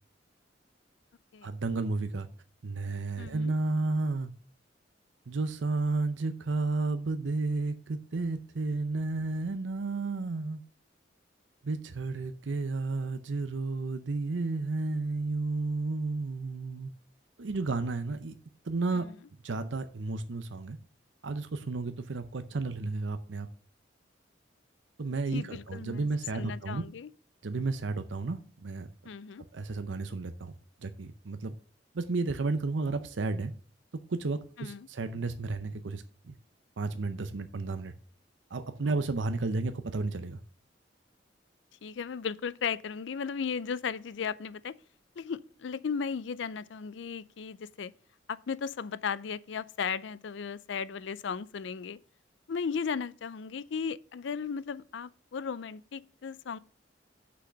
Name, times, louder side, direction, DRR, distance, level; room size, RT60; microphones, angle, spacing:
voice 1, 1.4-2.3 2.6-4.3 5.3-10.6 11.6-16.9 17.4-18.3 18.6-19.1 19.4-20.8 21.2-23.5 25.0-26.8 27.4-28.9 29.5-30.5 30.8-31.5 31.9-33.5 34.1-36.4 36.8-37.9 38.5-40.4, right 3 dB, 80° right, 0.6 m, -32 dB
voice 2, 3.2-3.5 18.9-19.1 25.3-26.1 26.3-27.1 29.0-29.4 34.6-34.9 41.8-44.7 45.2-47.9 48.3-52.0 52.5-56.6, left 6 dB, 75° left, 0.4 m, -36 dB
6.2 x 5.8 x 6.3 m
head